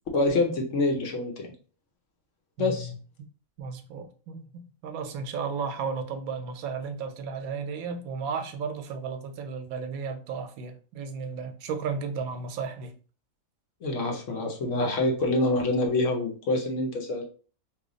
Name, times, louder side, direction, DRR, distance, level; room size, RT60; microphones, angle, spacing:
voice 1, 0.1-1.5 2.6-2.9 13.8-17.2, left 2 dB, 65° left, 1.0 m, -26 dB
voice 2, 2.6-3.3 3.6-12.9, right 5 dB, 90° right, 1.0 m, -34 dB
3.0 x 2.2 x 3.8 m
omnidirectional pair, 1.5 m